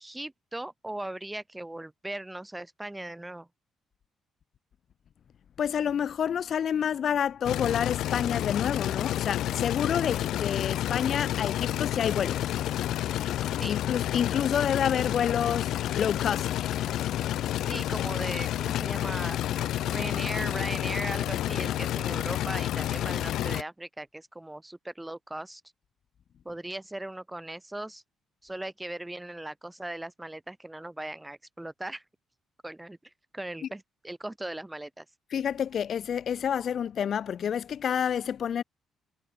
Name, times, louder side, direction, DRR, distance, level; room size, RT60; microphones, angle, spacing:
voice 1, 0.0-3.5 13.6-13.7 17.6-25.6 26.4-28.0 28.4-32.0 32.6-33.0 33.3-35.1, right 1 dB, 10° right, 7.3 m, -38 dB
voice 2, 5.6-12.8 13.7-16.5 35.3-38.6, left 8 dB, 60° left, 1.5 m, -29 dB
sound 1, 7.4-23.6, left 12 dB, 80° left, 0.5 m, -30 dB
cardioid pair, 90°, 0 cm